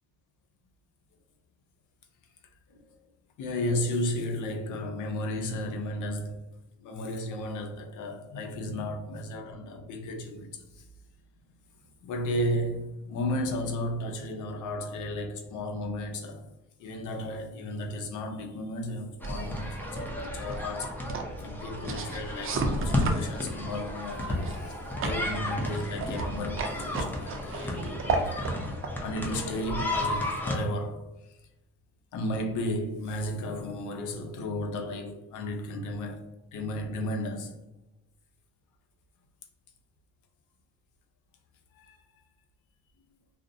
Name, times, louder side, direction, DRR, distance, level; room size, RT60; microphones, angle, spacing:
voice 1, 3.4-6.4 6.8-10.9 11.7-16.5 16.8-21.0 21.4-28.7 29.0-31.4 32.1-37.5 41.7-42.2, left 1 dB, 80° left, 0.6 m, -34 dB
sound 1, 19.2-30.6, left 1 dB, 5° left, 0.5 m, -33 dB
sound 2, 19.2-30.3, right 3 dB, 45° right, 0.4 m, -35 dB
2.4 x 2.0 x 2.5 m
cardioid pair, 90°, 30 cm